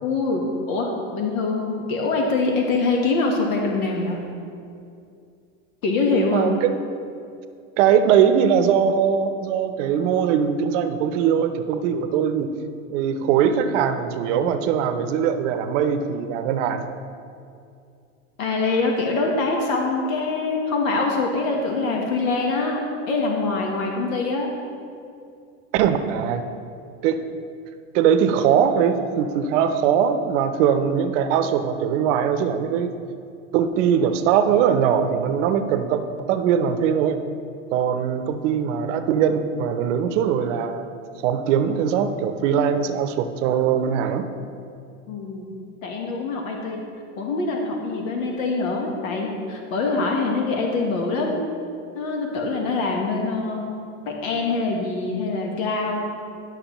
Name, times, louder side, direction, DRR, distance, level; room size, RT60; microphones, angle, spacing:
voice 1, 0.0-4.2 5.8-6.4 18.4-24.5 45.1-45.5 45.8-46.8 47.2-51.4 51.9-56.1, left 3 dB, 80° left, 1 dB, 1.3 m, -24 dB
voice 2, 6.3-6.8 7.8-12.5 12.9-16.9 25.7-26.4 27.0-27.2 27.9-32.9 33.5-37.2 37.7-40.9 41.2-44.3, right 8 dB, 65° right, 9 dB, 0.7 m, -21 dB
11.5 x 6.1 x 3.0 m, 2.4 s
supercardioid pair, 130°, 40 cm